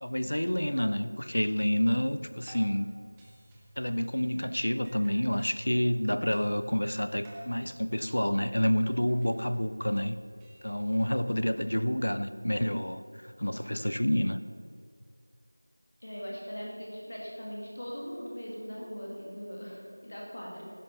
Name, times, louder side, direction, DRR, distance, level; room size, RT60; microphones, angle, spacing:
voice 1, 0.0-2.9 3.8-10.1 10.6-13.0 13.4-14.4, equal, 50° left, 12 dB, 0.6 m, -28 dB
sound 1, 2.0-12.5, right 1 dB, ahead, 0.3 m, -54 dB
voice 2, 11.6-12.1 16.0-20.7, equal, 20° left, -3 dB, 2.0 m, -40 dB
11.5 x 10.5 x 5.8 m, 2.3 s
figure-of-eight pair, 180°, 0 cm